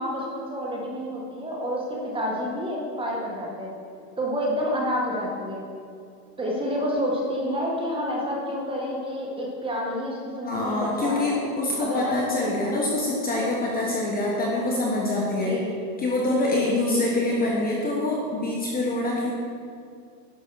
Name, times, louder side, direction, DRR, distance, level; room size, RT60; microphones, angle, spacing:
voice 1, 0.0-3.7 4.2-5.6 6.4-11.4 11.8-12.2 15.4-15.7 16.5-17.2, equal, 10° right, -3 dB, 1.8 m, -29 dB
voice 2, 10.4-15.6 16.0-19.3, left 2 dB, 20° left, -3 dB, 1.3 m, -25 dB
11.0 x 5.3 x 6.3 m, 2.4 s
supercardioid pair, 140°, 47 cm